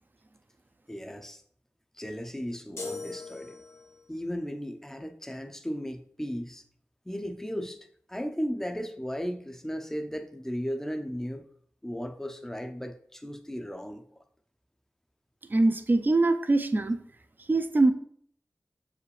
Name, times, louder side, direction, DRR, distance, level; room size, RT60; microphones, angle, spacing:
voice 1, 0.9-1.4 2.0-3.6 4.1-6.6 7.1-11.5 11.8-14.0, equal, 10° left, 0.6 m, -35 dB
sound 1, 2.8-4.1, left 3 dB, 65° left, 1.0 m, -40 dB
voice 2, 15.5-17.0 17.5-17.9, right 2 dB, 40° right, 0.5 m, -23 dB
6.5 x 4.9 x 3.3 m
cardioid pair, 50°, 5 cm